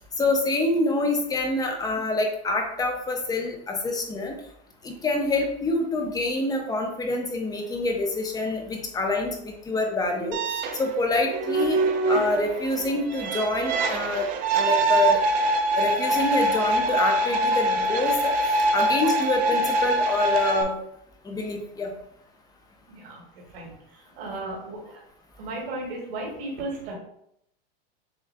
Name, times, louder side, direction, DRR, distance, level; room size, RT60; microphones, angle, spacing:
voice 1, 0.2-4.3 4.8-10.4 10.7-11.8 12.1-14.3 14.5-15.2 15.8-18.3 18.7-20.8 21.2-21.9, left 2 dB, 10° left, 3 dB, 0.6 m, -26 dB
sound 1, 10.3-20.6, right 2 dB, 25° right, 0.4 m, -24 dB
voice 2, 22.9-23.7 24.2-25.0 25.4-26.9, right 2 dB, 65° right, -1 dB, 1.6 m, -35 dB
7.0 x 2.5 x 2.2 m, 0.73 s
supercardioid pair, 130°, 32 cm